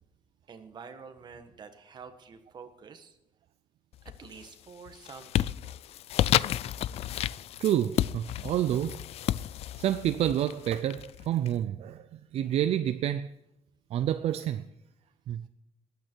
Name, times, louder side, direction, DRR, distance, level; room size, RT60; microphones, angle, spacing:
voice 1, 0.5-3.2 4.2-5.8, right 5 dB, 40° right, 1.5 m, -48 dB
sound 1, 4.0-4.5 4.9-11.5, left 12 dB, 60° left, 0.4 m, -31 dB
voice 2, 7.6-9.0 9.8-13.3 13.9-14.6 15.3-15.5, right 11 dB, 60° right, 0.5 m, -28 dB
20.0 x 9.4 x 4.6 m
cardioid pair, 160°, 12 cm